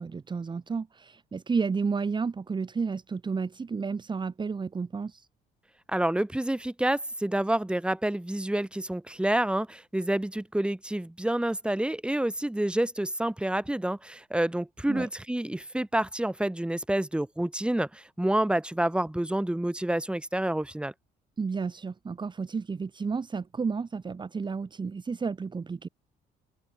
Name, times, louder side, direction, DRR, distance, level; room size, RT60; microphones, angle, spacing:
voice 1, 0.0-5.3 14.9-15.1 21.4-25.9, right 5 dB, 25° right, 3.2 m, -31 dB
voice 2, 5.9-20.9, right 1 dB, 5° right, 6.0 m, -28 dB
cardioid pair, 110°, 17 cm